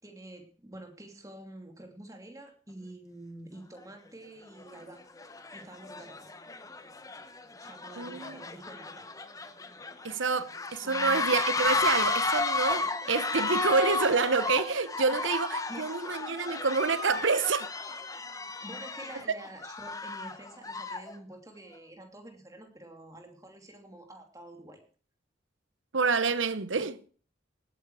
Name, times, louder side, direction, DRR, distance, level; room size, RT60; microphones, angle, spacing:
voice 1, 0.0-5.0 5.5-6.3 7.6-9.1 10.8-11.3 15.1-15.2 15.7-15.9 18.6-24.8, right 1 dB, 15° right, 2.9 m, -48 dB
sound 1, 3.8-3.9 4.6-4.8 5.2-21.1, left 3 dB, 15° left, 1.0 m, -33 dB
voice 2, 8.0-8.4 10.0-17.7 25.9-27.0, right 4 dB, 80° right, 1.0 m, -28 dB
18.5 x 9.4 x 4.9 m
head